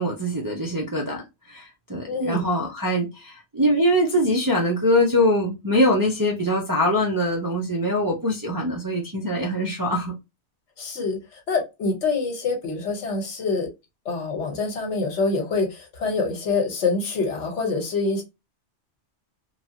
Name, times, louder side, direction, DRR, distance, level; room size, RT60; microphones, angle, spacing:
voice 1, 0.0-10.1, equal, 30° right, 0.4 m, -23 dB
voice 2, 2.1-2.5 10.8-13.7 14.0-18.2, left 3 dB, 75° left, 1.2 m, -26 dB
3.0 x 2.3 x 2.7 m
omnidirectional pair, 1.2 m